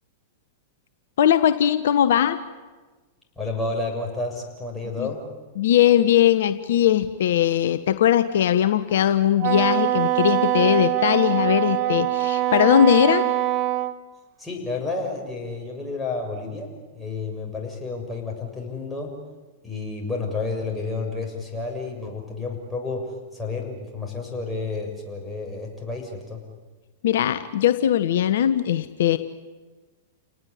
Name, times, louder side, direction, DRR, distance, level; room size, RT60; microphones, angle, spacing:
voice 1, 1.2-2.4 5.0-5.1 5.6-13.2 27.0-29.2, left 10 dB, 65° left, 11 dB, 1.1 m, -20 dB
voice 2, 3.4-5.2 14.4-19.1 19.6-23.1 23.3-26.4, left 3 dB, 5° left, -1 dB, 7.1 m, -30 dB
Wind instrument woodwind instrument, 9.4-13.9, right 14 dB, 40° right, 1.4 m, -23 dB
29.0 x 19.0 x 10.0 m, 1.3 s
hypercardioid pair, 105°, 0 cm